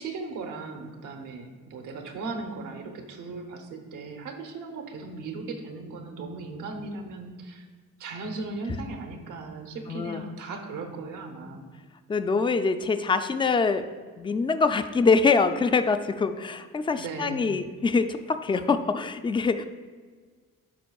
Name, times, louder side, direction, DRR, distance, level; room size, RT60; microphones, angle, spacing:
voice 1, 0.0-7.6 8.0-11.6 17.0-17.4, right 3 dB, 85° right, 5 dB, 0.9 m, -37 dB
voice 2, 9.9-10.2 12.1-13.9 14.2-19.6, left 4 dB, 15° left, 9 dB, 0.3 m, -24 dB
11.0 x 4.5 x 2.3 m, 1.5 s
cardioid pair, 90°, 30 cm